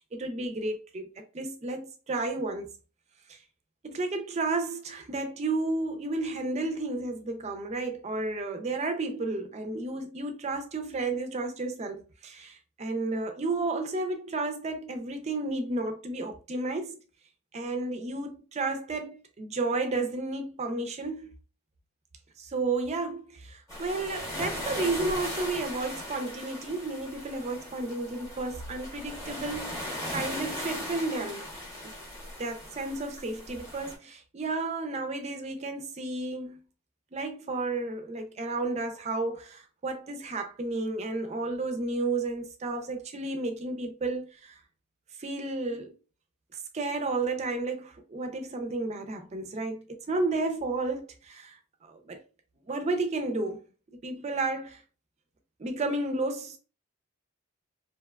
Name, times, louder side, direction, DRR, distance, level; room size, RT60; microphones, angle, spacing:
voice 1, 0.0-2.7 3.3-3.4 3.8-17.0 17.5-21.3 22.4-31.5 31.8-31.9 32.4-36.6 37.1-44.6 45.2-45.9 46.7-52.2 52.7-53.6 54.0-54.8 55.6-56.6, right 2 dB, 30° right, 0.4 m, -32 dB
sound 1, 23.7-34.0, left 1 dB, 15° left, 0.8 m, -38 dB
2.8 x 2.1 x 2.2 m
head